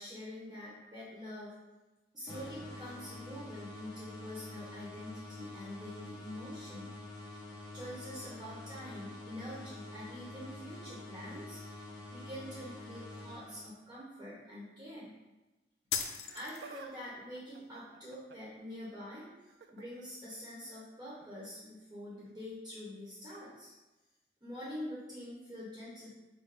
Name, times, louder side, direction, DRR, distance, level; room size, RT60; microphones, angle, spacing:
voice 1, 0.0-1.6 2.1-6.9 7.7-11.6 12.1-15.1 15.9-23.7 24.4-26.1, left 1 dB, 25° right, -8 dB, 1.0 m, -45 dB
sound 1, 2.3-14.0, left 2 dB, 25° left, 1.1 m, -47 dB
sound 2, 15.9-16.9, left 7 dB, 80° left, 0.4 m, -37 dB
Laughter, 16.2-16.9 17.2-18.6 19.5-19.9 21.2-21.3 22.3-22.4, right 4 dB, 65° right, 0.3 m, -52 dB
4.8 x 2.2 x 4.7 m, 1.1 s
head